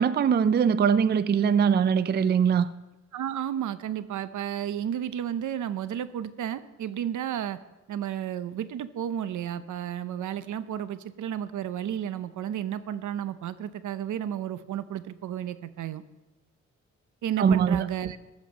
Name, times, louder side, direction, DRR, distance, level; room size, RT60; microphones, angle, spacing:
voice 1, 0.0-2.7 17.4-17.8, right 7 dB, 35° right, 15 dB, 0.4 m, -22 dB
voice 2, 3.1-7.6 7.9-16.0 17.2-18.2, right 10 dB, 80° right, 14 dB, 0.7 m, -32 dB
14.5 x 7.4 x 6.3 m, 1.1 s
cardioid pair, 120°, 30 cm